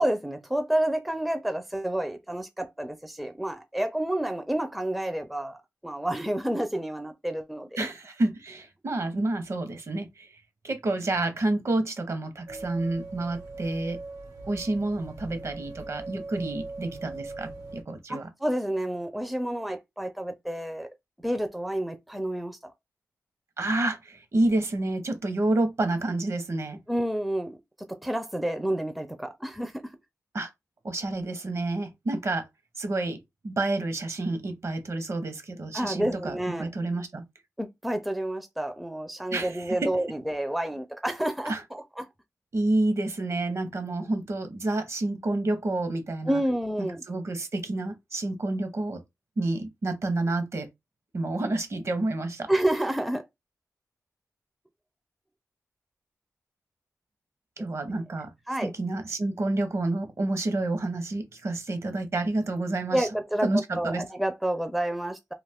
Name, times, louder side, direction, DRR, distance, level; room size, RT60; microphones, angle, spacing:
voice 1, 0.0-5.6 5.8-7.8 18.1-20.9 21.2-22.7 26.9-27.6 27.9-29.9 35.7-36.7 37.6-42.1 46.3-47.0 52.5-53.3 58.5-58.7 62.9-65.3, right 1 dB, ahead, 0.4 m, -29 dB
voice 2, 7.8-10.3 10.6-14.0 14.5-18.3 23.6-26.8 30.3-30.5 30.8-32.5 32.8-33.2 33.4-37.2 39.3-39.9 41.5-41.6 42.5-46.4 46.8-49.0 49.4-50.7 51.1-52.5 57.6-58.3 58.6-63.1 63.4-64.0, right 2 dB, 55° right, 0.8 m, -29 dB
sound 1, 12.5-17.8, right 2 dB, 80° right, 1.1 m, -40 dB
2.4 x 2.4 x 3.5 m
cardioid pair, 70°, 6 cm